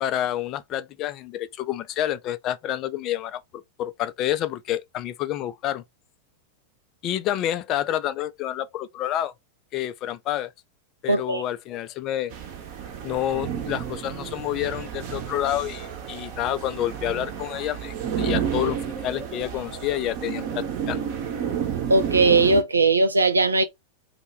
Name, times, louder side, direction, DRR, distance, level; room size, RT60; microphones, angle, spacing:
voice 1, 0.0-5.8 7.0-9.3 9.7-10.5 11.0-12.3 13.0-18.8 19.0-21.0, left 12 dB, 35° left, 0.3 m, -28 dB
voice 2, 11.1-11.4 21.9-23.6, right 3 dB, 80° right, 0.4 m, -19 dB
sound 1, 12.3-22.6, right 8 dB, 45° right, 0.8 m, -31 dB
2.2 x 2.1 x 3.2 m
figure-of-eight pair, 90°, 0 cm